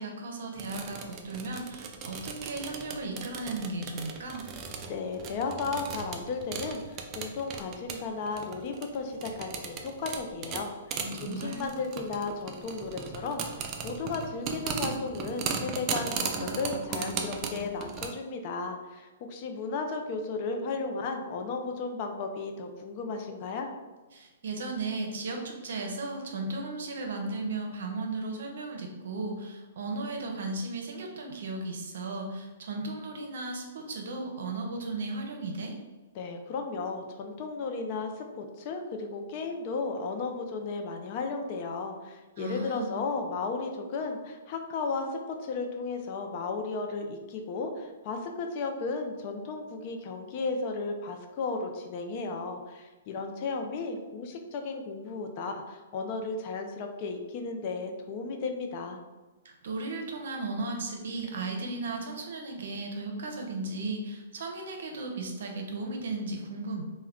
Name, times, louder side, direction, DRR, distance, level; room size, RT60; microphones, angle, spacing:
voice 1, 0.0-4.5 11.0-11.7 24.1-35.7 42.4-42.9 59.4-66.8, right 2 dB, 70° right, 2 dB, 0.6 m, -35 dB
sound 1, 0.5-18.1, right 5 dB, 30° right, 0.3 m, -37 dB
voice 2, 4.9-23.7 36.2-59.0, left 4 dB, 40° left, 4 dB, 0.4 m, -34 dB
2.2 x 2.2 x 3.5 m, 1.2 s
hypercardioid pair, 140°, 0 cm